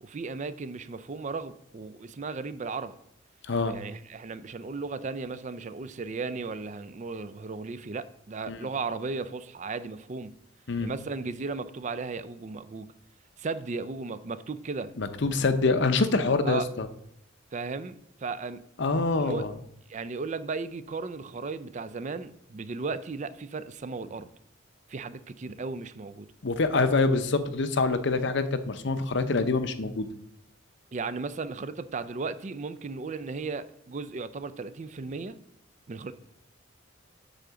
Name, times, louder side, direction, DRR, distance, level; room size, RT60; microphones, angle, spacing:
voice 1, 0.0-3.0 3.6-10.3 10.8-12.9 13.4-14.9 16.4-16.7 17.5-17.9 18.2-18.6 19.2-19.4 19.9-24.3 24.9-26.3 30.9-35.4 35.9-36.1, right 4 dB, 35° right, 14 dB, 0.4 m, -35 dB
voice 2, 15.0-16.9 18.8-19.5 26.4-30.1, left 3 dB, 60° left, 10 dB, 0.6 m, -25 dB
8.2 x 3.8 x 6.8 m, 0.75 s
head